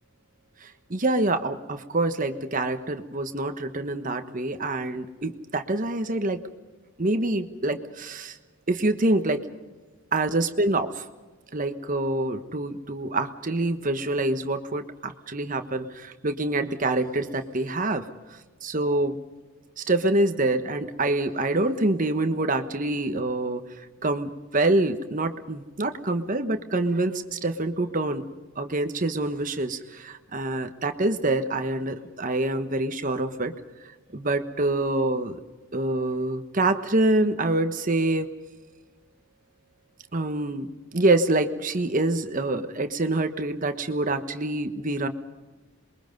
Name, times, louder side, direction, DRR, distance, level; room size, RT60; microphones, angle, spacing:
voice 1, 0.9-6.4 7.0-8.4 8.7-9.4 10.1-11.0 11.5-18.1 18.6-19.2 19.8-23.6 24.0-28.3 28.6-33.5 34.1-35.4 35.7-38.3 40.1-45.1, right 2 dB, 40° right, 8 dB, 1.3 m, -26 dB
27.5 x 22.5 x 5.3 m, 1.2 s
head